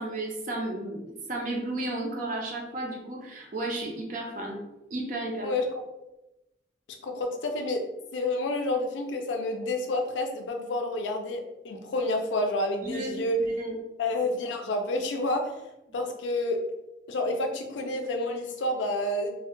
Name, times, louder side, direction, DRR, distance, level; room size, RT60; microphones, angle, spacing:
voice 1, 0.0-4.6 4.9-5.5 12.8-13.8, right 2 dB, 45° right, 0 dB, 0.4 m, -33 dB
voice 2, 7.0-7.8 8.1-13.4 14.0-15.5 15.9-16.6 17.1-19.4, left 2 dB, 80° left, 4 dB, 0.4 m, -29 dB
2.1 x 2.0 x 2.9 m, 0.95 s
head